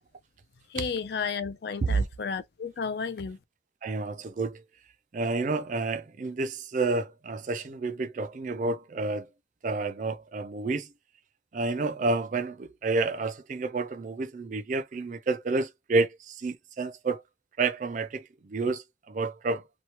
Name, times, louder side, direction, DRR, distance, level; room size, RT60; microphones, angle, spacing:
voice 1, 0.7-3.4, left 5 dB, 60° left, 0.4 m, -32 dB
voice 2, 3.8-4.6 5.1-9.3 9.6-10.9 11.5-17.2 17.6-19.6, right 3 dB, 40° right, 0.4 m, -29 dB
2.9 x 2.2 x 2.9 m
head